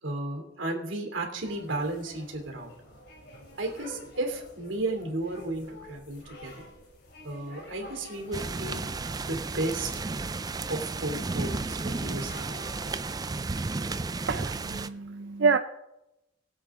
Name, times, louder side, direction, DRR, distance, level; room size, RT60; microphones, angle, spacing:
voice 1, 0.0-2.7 3.6-6.7 7.2-8.9 9.3-9.9 10.7-12.5, right 2 dB, 85° right, 2 dB, 2.9 m, -33 dB
sound 1, 1.4-13.3, equal, 60° left, 3.3 m, -49 dB
sound 2, 8.3-14.9, right 3 dB, 20° right, 0.4 m, -33 dB
voice 2, 14.3-15.6, right 5 dB, 70° right, 8 dB, 0.5 m, -27 dB
21.0 x 7.9 x 3.7 m, 0.91 s
head